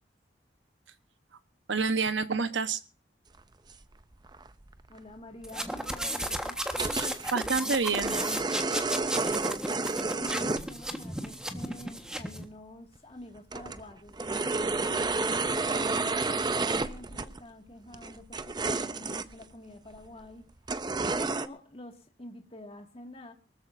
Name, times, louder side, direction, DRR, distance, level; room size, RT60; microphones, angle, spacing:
voice 1, 1.7-2.8 6.8-8.2, right 4 dB, 85° right, 1.1 m, -29 dB
sound 1, 3.7-3.8 4.3-4.5 4.7-4.8 5.0-5.1 5.7-5.8 6.7-7.3 7.7-10.6 11.0-11.2 12.4-12.5 13.0-13.1 13.4-17.4 17.9-19.4 20.0-20.1 20.7-21.5, right 3 dB, 25° right, 0.6 m, -30 dB
voice 2, 4.9-6.6 9.2-16.3 16.6-20.5 20.9-23.3, left 1 dB, 30° left, 2.2 m, -47 dB
sound 2, 5.4-12.4, right 1 dB, 5° right, 1.4 m, -34 dB
24.0 x 13.5 x 2.7 m
head